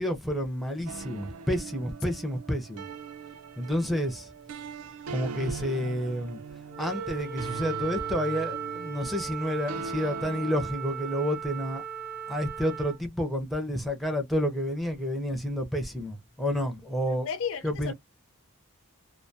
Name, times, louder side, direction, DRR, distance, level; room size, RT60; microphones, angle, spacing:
voice 1, 0.0-2.9 3.6-4.3 5.1-6.4 6.8-11.8 12.3-17.3 17.6-17.9, equal, ahead, 0.5 m, -30 dB
sound 1, 0.9-10.7, right 5 dB, 70° right, 0.4 m, -40 dB
Wind instrument woodwind instrument, 6.7-13.0, right 7 dB, 45° right, 0.8 m, -37 dB
voice 2, 17.1-17.9, left 7 dB, 60° left, 0.5 m, -34 dB
2.2 x 2.2 x 2.6 m
head